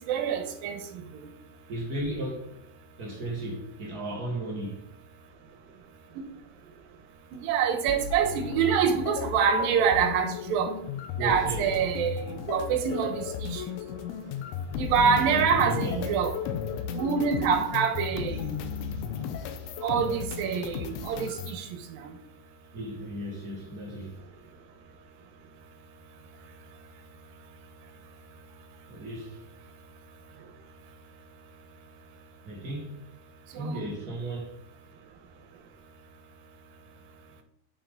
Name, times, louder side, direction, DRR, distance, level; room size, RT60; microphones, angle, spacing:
voice 1, 0.1-0.8 1.1-1.2 7.4-10.7 11.2-13.6 14.8-16.6 16.9-18.5 19.8-21.7 22.0-22.1 33.5-33.9, right 7 dB, 80° right, 2.7 m, -26 dB
voice 2, 1.7-2.5 3.0-4.8 11.2-11.7 15.0-16.1 22.7-24.1 28.9-29.4 32.4-33.0 33.5-34.5, right 1 dB, 45° right, 1.3 m, -35 dB
sound 1, 7.9-21.6, left 7 dB, 80° left, 1.8 m, -35 dB
8.8 x 5.7 x 3.8 m
omnidirectional pair, 4.1 m